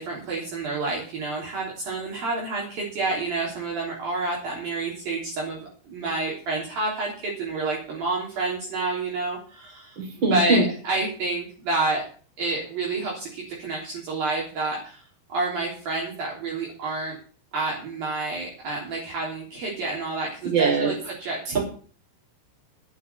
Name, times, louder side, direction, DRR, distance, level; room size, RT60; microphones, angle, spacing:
voice 1, 0.0-10.0 10.3-12.0 12.4-15.0 15.3-17.2 17.5-21.6, right 3 dB, 50° right, -3 dB, 4.8 m, -29 dB
voice 2, 10.0-10.6 20.4-20.9 21.5-21.6, right 4 dB, 25° right, -1 dB, 5.4 m, -22 dB
12.0 x 9.5 x 6.9 m, 0.42 s
omnidirectional pair, 5.9 m